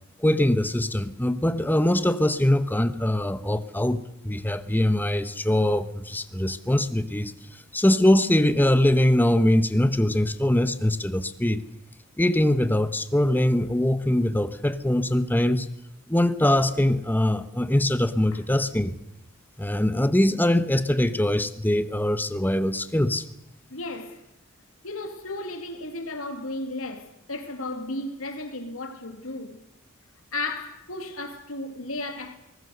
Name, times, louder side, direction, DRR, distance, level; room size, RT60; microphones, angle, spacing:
voice 1, 0.2-11.6 12.2-15.7 16.1-19.0 19.6-23.2, left 1 dB, 10° left, 1.1 m, -22 dB
voice 2, 23.7-24.2 24.8-29.6 30.3-32.3, left 2 dB, 75° left, 3.0 m, -34 dB
23.0 x 19.5 x 6.7 m
head